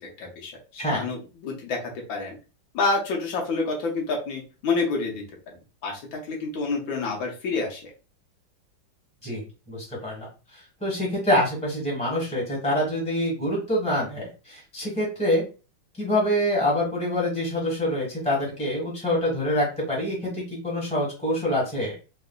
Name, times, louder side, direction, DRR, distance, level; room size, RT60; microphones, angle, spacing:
voice 1, 0.0-1.8 2.1-2.3 2.7-5.6 5.8-7.9, left 3 dB, 80° left, 0 dB, 1.6 m, -28 dB
voice 2, 9.2-10.3 10.5-15.4 16.0-21.9, left 1 dB, 5° left, -3 dB, 1.2 m, -26 dB
4.0 x 2.4 x 2.2 m, 0.33 s
omnidirectional pair, 2.2 m